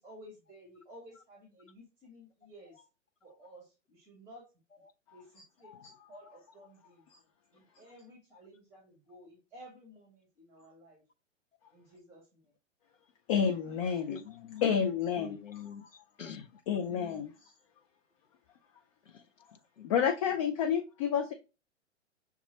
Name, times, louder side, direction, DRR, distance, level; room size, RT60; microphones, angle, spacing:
voice 1, 0.0-2.8 3.2-4.5 5.1-7.1 7.5-11.0 11.7-12.5 13.6-14.0, equal, 5° right, 1.8 m, -55 dB
voice 2, 13.3-14.2 14.6-15.4 16.7-17.3 19.8-21.3, left 7 dB, 30° left, 0.5 m, -29 dB
voice 3, 14.1-15.9 16.2-17.3 19.0-19.9, left 7 dB, 85° left, 0.7 m, -47 dB
6.9 x 2.3 x 2.8 m
figure-of-eight pair, 110°, 37 cm